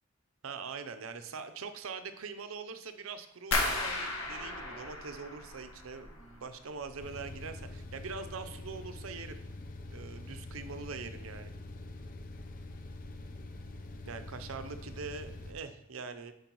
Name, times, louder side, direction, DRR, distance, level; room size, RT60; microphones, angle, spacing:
voice 1, 0.4-9.4 9.9-11.5 14.1-16.3, right 5 dB, 70° right, 9 dB, 0.6 m, -43 dB
sound 1, 3.5-6.4 6.7-7.4 7.7-8.1 8.6-8.7, left 2 dB, 85° left, 1.6 m, -35 dB
sound 2, 7.0-15.5, left 2 dB, 40° left, 0.6 m, -45 dB
9.1 x 5.2 x 3.0 m, 0.83 s
head